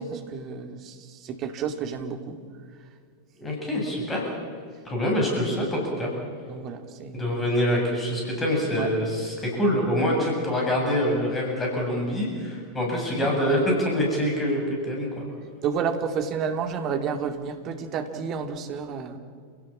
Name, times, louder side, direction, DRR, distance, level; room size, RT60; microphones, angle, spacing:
voice 1, 0.0-2.4 6.5-7.2 8.8-8.9 13.2-13.4 15.6-19.2, right 6 dB, 35° right, 6 dB, 2.5 m, -30 dB
voice 2, 3.4-4.3 4.8-6.1 7.1-15.2, equal, 15° left, -1 dB, 7.9 m, -25 dB
29.5 x 17.5 x 7.5 m, 2.2 s
figure-of-eight pair, 90°, 0 cm